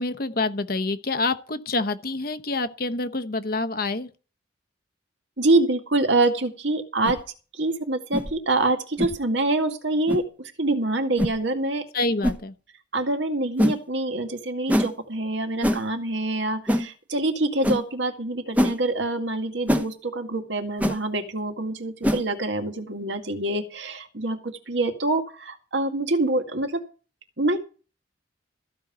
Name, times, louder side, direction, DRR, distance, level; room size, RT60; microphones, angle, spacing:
voice 1, 0.0-4.1 11.9-12.5, left 3 dB, 50° left, 1.0 m, -27 dB
voice 2, 5.4-7.2 7.6-11.8 12.9-26.8 27.4-27.6, right 2 dB, 70° right, 2.0 m, -25 dB
sound 1, 7.0-7.2 8.1-8.3 9.0-9.2 10.1-10.2 11.2-11.4 12.2-12.4 13.6-13.8 14.7-14.9 15.6-15.8 16.7-16.9 17.6-17.8 18.6-18.8 19.7-19.9 20.8-21.0 22.0-22.2, equal, 10° right, 0.9 m, -23 dB
14.5 x 5.5 x 9.1 m
head